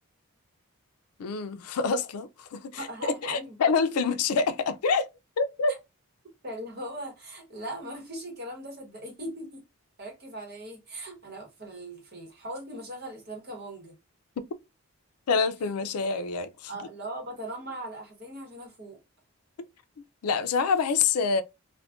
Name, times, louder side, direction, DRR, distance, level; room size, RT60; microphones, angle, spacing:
voice 1, 1.2-5.1 5.4-5.7 15.3-16.9 20.2-21.4, left 5 dB, 85° left, 0.4 m, -26 dB
voice 2, 2.8-3.5 6.4-9.6 10.0-14.0 16.7-19.0, right 1 dB, 45° right, 1.0 m, -39 dB
2.4 x 2.1 x 3.4 m
head